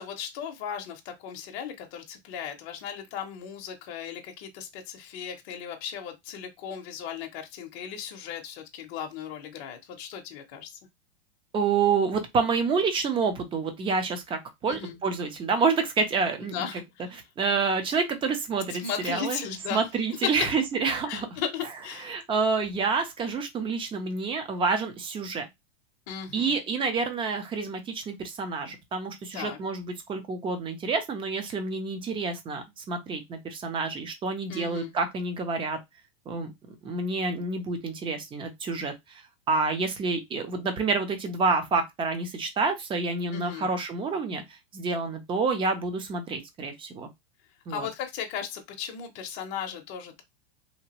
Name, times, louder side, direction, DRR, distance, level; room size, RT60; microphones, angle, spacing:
voice 1, 0.0-10.8 14.7-15.0 16.4-17.2 18.7-19.8 21.1-22.2 26.1-26.5 29.3-29.6 34.5-34.9 43.3-43.7 47.7-50.2, left 8 dB, 40° left, 0.7 m, -37 dB
voice 2, 11.5-16.5 17.4-19.4 19.7-21.3 22.0-25.5 26.3-35.8 36.3-36.5 36.8-47.1 47.7-47.9, right 4 dB, 15° right, 0.6 m, -28 dB
2.9 x 2.5 x 2.9 m
supercardioid pair, 135°, 32 cm